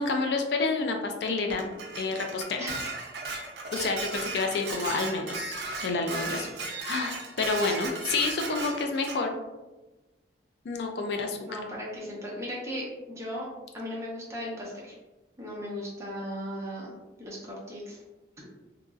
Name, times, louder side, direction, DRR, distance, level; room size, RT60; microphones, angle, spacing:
voice 1, 0.0-2.7 3.7-6.5 6.8-9.4 10.6-11.6, left 3 dB, 70° left, 3 dB, 0.4 m, -29 dB
Dishes pots and pans, 1.5-9.2, right 3 dB, 65° right, 0.5 m, -36 dB
voice 2, 11.5-13.5 13.7-14.9 15.4-16.9 17.2-18.0, equal, 15° right, -4 dB, 0.6 m, -37 dB
2.9 x 2.5 x 2.3 m, 1.1 s
head